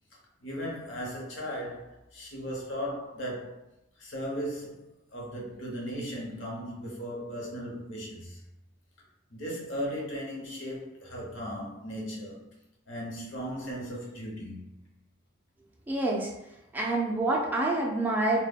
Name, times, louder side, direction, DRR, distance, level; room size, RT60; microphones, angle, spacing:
voice 1, 0.4-3.6 4.0-8.4 9.3-12.5 12.9-14.7, equal, 70° left, 0.8 m, -37 dB
voice 2, 15.9-16.3 16.7-18.4, right 2 dB, 10° right, 0.3 m, -27 dB
2.1 x 2.1 x 3.4 m
head